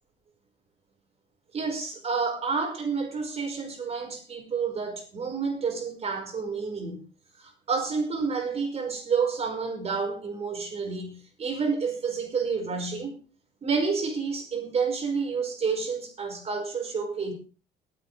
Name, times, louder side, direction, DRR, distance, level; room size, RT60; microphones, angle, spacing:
voice 1, 1.5-7.0 7.4-13.2 13.6-17.3, right 5 dB, 40° right, 5.5 m, -29 dB
20.5 x 9.3 x 3.5 m
cardioid pair, 110°, 17 cm